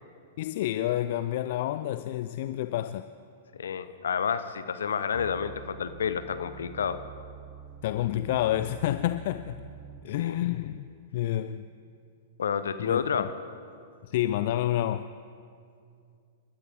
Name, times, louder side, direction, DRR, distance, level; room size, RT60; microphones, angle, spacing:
voice 1, 0.4-3.1 7.8-9.6 10.0-10.9 11.1-11.7 12.8-13.0 14.0-15.1, left 13 dB, 55° left, 0.4 m, -29 dB
voice 2, 3.6-7.0 10.2-10.4 12.4-13.3, left 7 dB, 70° left, 0.9 m, -30 dB
sound 1, 5.1-10.3 10.9-11.0, right 8 dB, 20° right, 0.7 m, -46 dB
29.5 x 12.5 x 3.6 m
figure-of-eight pair, 105°, 0 cm